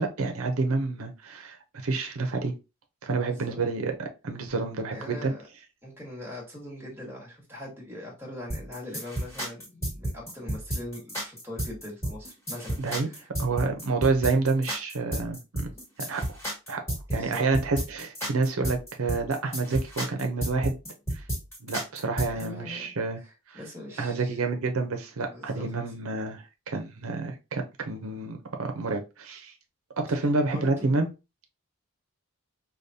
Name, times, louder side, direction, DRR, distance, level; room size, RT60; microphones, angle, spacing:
voice 1, 0.0-1.6 1.8-2.5 3.0-5.3 12.8-13.1 13.4-15.4 16.1-16.4 16.7-16.8 17.1-20.7 21.1-21.2 21.6-23.2 23.5-23.6 24.0-29.5 30.0-31.1, right 3 dB, 80° right, 0.7 m, -28 dB
voice 2, 4.9-5.4 5.8-13.3 17.1-17.5 22.3-22.9 23.2-23.3 23.5-24.4 25.3-25.7 30.1-31.0, left 1 dB, 10° right, 1.4 m, -41 dB
sound 1, 8.5-22.4, right 1 dB, 10° left, 1.5 m, -32 dB
5.1 x 2.3 x 2.7 m
head